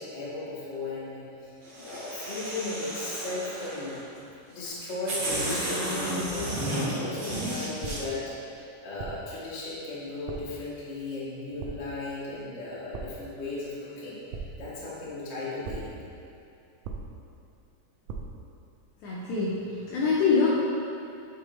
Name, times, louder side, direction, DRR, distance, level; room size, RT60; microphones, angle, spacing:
voice 1, 0.0-4.0 4.5-8.2 8.5-15.9, left 2 dB, 45° left, -9 dB, 1.8 m, -36 dB
sound 1, 1.6-4.0 4.6-4.7 5.1-8.0, right 1 dB, 55° right, 1.2 m, -32 dB
sound 2, 7.8-8.3 9.0-9.4 10.3-10.7 11.6-12.1 12.9-13.4 14.3-14.9 15.6-16.1 16.8-17.4 18.1-18.5, right 4 dB, 80° right, 1.6 m, -39 dB
voice 2, 19.0-20.5, left 4 dB, 75° left, -6 dB, 2.0 m, -25 dB
9.8 x 3.8 x 3.1 m, 2.6 s
omnidirectional pair, 3.8 m